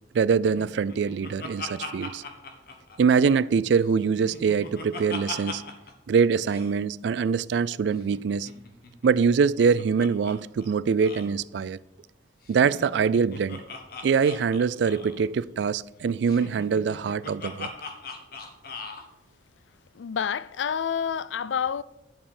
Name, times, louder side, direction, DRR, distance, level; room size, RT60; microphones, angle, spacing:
voice 1, 0.1-2.2 3.0-5.6 6.1-8.5 9.0-11.8 12.5-13.6 14.0-17.7, right 6 dB, 70° right, 0.3 m, -23 dB
Laughter, 0.6-3.5 3.8-5.9 6.2-6.3 6.5-6.7 8.0-10.3 10.6-10.7 11.0-11.3 12.4-15.2 16.3-19.0, left 4 dB, 55° left, 1.5 m, -40 dB
voice 2, 19.9-21.8, left 7 dB, 85° left, 0.4 m, -28 dB
11.0 x 5.5 x 6.6 m
head